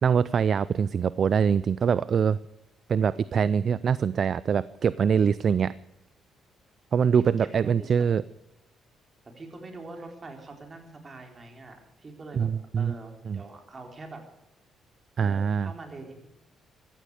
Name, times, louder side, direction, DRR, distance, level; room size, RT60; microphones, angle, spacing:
voice 1, 0.0-2.4 2.9-5.7 6.9-8.2 12.3-12.9 13.3-13.4 15.2-15.7, right 7 dB, 50° right, 18 dB, 0.4 m, -24 dB
voice 2, 7.0-8.1 9.4-12.5 12.8-14.2 15.2-16.3, right 3 dB, 35° right, 3 dB, 3.9 m, -44 dB
15.0 x 14.5 x 4.9 m, 0.88 s
cardioid pair, 90°, 0 cm